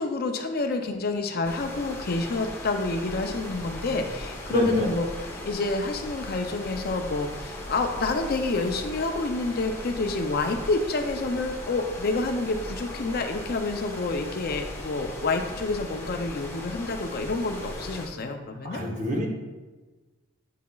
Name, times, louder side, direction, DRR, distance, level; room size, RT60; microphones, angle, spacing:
voice 1, 0.0-5.1 5.4-18.8, left 3 dB, 45° left, 5 dB, 0.5 m, -28 dB
sound 1, 1.4-18.1, left 1 dB, 10° left, 0.8 m, -38 dB
voice 2, 4.5-5.0 18.6-19.3, left 1 dB, 35° right, -1 dB, 1.0 m, -27 dB
8.3 x 5.7 x 2.3 m, 1.2 s
head